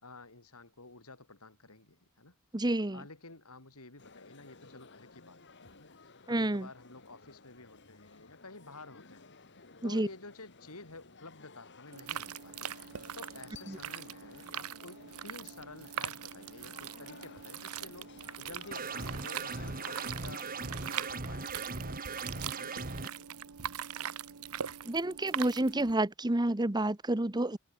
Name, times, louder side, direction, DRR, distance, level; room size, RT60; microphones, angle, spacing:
voice 1, 0.0-2.3 2.9-9.3 9.8-15.0 15.2-23.4 23.9-24.1, left 3 dB, 85° left, 5.1 m, -51 dB
voice 2, 2.5-3.0 6.3-6.7 9.8-10.1 13.7-13.8 24.9-27.6, right 1 dB, 20° right, 1.1 m, -29 dB
sound 1, 4.0-20.5, left 4 dB, 55° left, 3.5 m, -55 dB
sound 2, 11.9-26.0, right 9 dB, 80° right, 1.0 m, -42 dB
sound 3, 18.7-23.1, right 3 dB, 40° right, 2.1 m, -39 dB
head